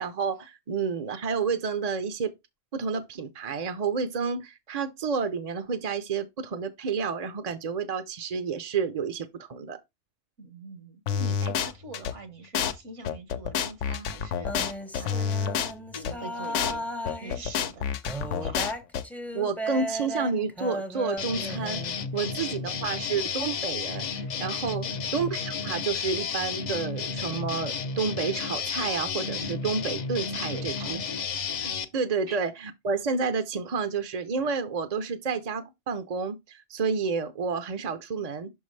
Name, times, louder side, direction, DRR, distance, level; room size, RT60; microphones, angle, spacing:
voice 1, 0.0-2.3 2.7-9.8 19.3-24.9 25.1-31.0 31.6-38.5, right 5 dB, 45° right, 0.6 m, -30 dB
voice 2, 10.4-14.7 15.0-15.3 15.9-16.9 17.2-17.9 18.4-18.6 22.2-22.5 24.7-25.1 30.5-31.1 32.3-32.4, right 2 dB, 75° right, 1.5 m, -43 dB
sound 1, 11.1-12.1 12.6-12.7 13.1-16.1 16.6-16.7 17.1-19.0, left 7 dB, 85° left, 1.0 m, -28 dB
sound 2, 14.4-17.5 18.0-22.0, right 1 dB, ahead, 0.5 m, -35 dB
sound 3, 21.2-31.8, left 5 dB, 50° left, 0.5 m, -32 dB
5.8 x 5.4 x 3.2 m
omnidirectional pair, 1.2 m